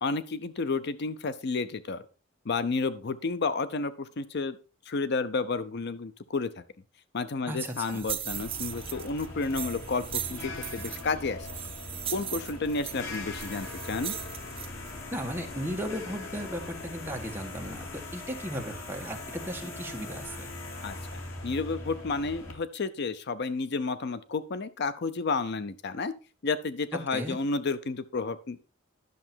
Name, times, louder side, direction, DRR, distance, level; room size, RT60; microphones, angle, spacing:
voice 1, 0.0-2.0 2.5-4.6 4.9-6.5 7.1-11.5 12.1-14.1 20.8-26.1 26.4-28.6, left 4 dB, 55° left, 13 dB, 0.5 m, -31 dB
voice 2, 7.5-8.0 15.1-20.5 27.1-27.4, equal, 10° right, 2 dB, 1.5 m, -36 dB
sound 1, 7.6-15.0, right 10 dB, 30° right, 0.6 m, -39 dB
sound 2, 8.3-22.5, left 2 dB, 85° left, 2.4 m, -41 dB
11.0 x 6.6 x 4.4 m, 0.34 s
head